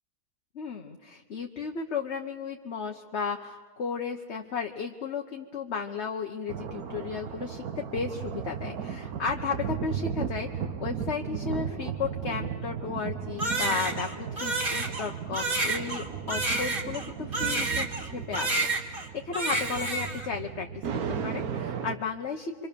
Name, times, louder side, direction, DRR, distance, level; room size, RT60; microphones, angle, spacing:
voice 1, 0.5-20.7 21.2-22.7, left 5 dB, 50° left, 3 dB, 1.3 m, -34 dB
sound 1, 6.5-22.0, right 7 dB, 70° right, 1.5 m, -35 dB
Crying sobbing, 13.4-18.1 18.3-19.1 19.3-20.3, right 2 dB, 35° right, 2.3 m, -29 dB
26.5 x 25.5 x 6.9 m, 1.4 s
omnidirectional pair, 1.6 m